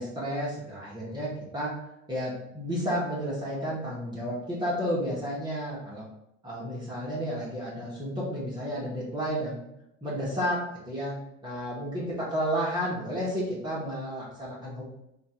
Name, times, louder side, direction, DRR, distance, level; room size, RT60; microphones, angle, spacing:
voice 1, 0.0-1.7 2.1-6.0 6.4-9.6 10.0-10.6 10.9-11.1 11.4-14.8, equal, 10° right, -7 dB, 1.2 m, -31 dB
3.2 x 2.5 x 4.3 m, 0.81 s
supercardioid pair, 95°, 36 cm